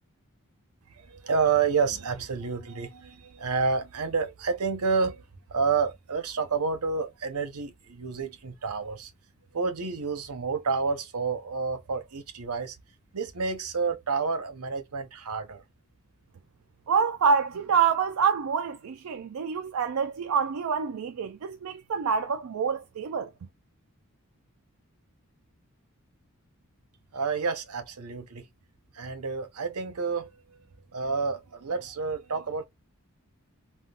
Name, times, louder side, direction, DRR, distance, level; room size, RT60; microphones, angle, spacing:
voice 1, 0.9-5.2 5.5-9.1 9.5-12.8 13.1-15.6 27.1-28.5 28.9-30.3 30.9-32.7, right 5 dB, 90° right, 0.8 m, -29 dB
voice 2, 16.9-23.3, right 6 dB, 70° right, 0.4 m, -26 dB
3.6 x 2.3 x 2.3 m
head